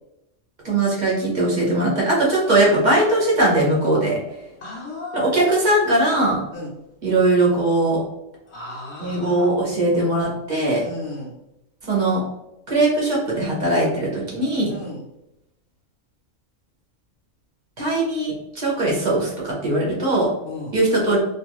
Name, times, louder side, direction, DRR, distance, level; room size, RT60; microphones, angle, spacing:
voice 1, 0.6-4.2 5.1-6.4 7.0-8.0 9.0-10.9 11.9-12.2 12.7-14.7 17.8-20.3 20.7-21.2, right 2 dB, 40° right, -4 dB, 0.9 m, -20 dB
voice 2, 4.6-5.3 6.5-6.7 8.5-9.5 10.8-11.3 14.7-15.0 20.4-20.7, left 2 dB, 65° left, -4 dB, 0.8 m, -34 dB
2.4 x 2.4 x 2.9 m, 0.89 s
omnidirectional pair, 1.3 m